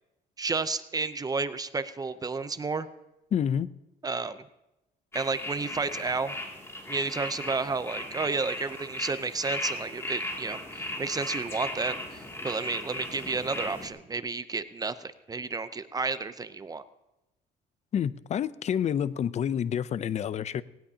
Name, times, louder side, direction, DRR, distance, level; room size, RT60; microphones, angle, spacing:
voice 1, 0.4-2.9 4.0-4.4 5.1-6.3 6.9-16.8, right 4 dB, 20° right, 0.6 m, -31 dB
voice 2, 3.3-3.7 17.9-20.6, left 8 dB, 40° left, 0.5 m, -28 dB
sound 1, 5.1-13.9, left 1 dB, 15° left, 2.5 m, -37 dB
18.5 x 18.5 x 2.8 m
cardioid pair, 110°, 17 cm